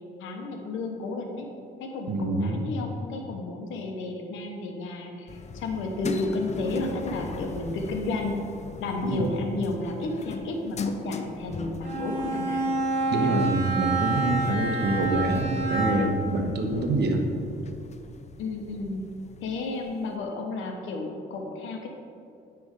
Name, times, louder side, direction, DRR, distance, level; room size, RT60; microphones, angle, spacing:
voice 1, 0.2-1.5 1.8-8.5 8.8-12.6 13.2-13.3 18.4-19.1 19.4-21.9, left 2 dB, 90° left, 3 dB, 1.0 m, -32 dB
voice 2, 2.1-2.6 9.0-9.3 13.1-17.3, right 2 dB, 60° right, 3 dB, 1.1 m, -26 dB
sound 1, 5.3-20.1, left 4 dB, 35° left, 0.5 m, -40 dB
Bowed string instrument, 11.8-16.3, right 2 dB, 35° right, 1.8 m, -28 dB
9.7 x 3.5 x 5.1 m, 2.5 s
cardioid pair, 90°, 20 cm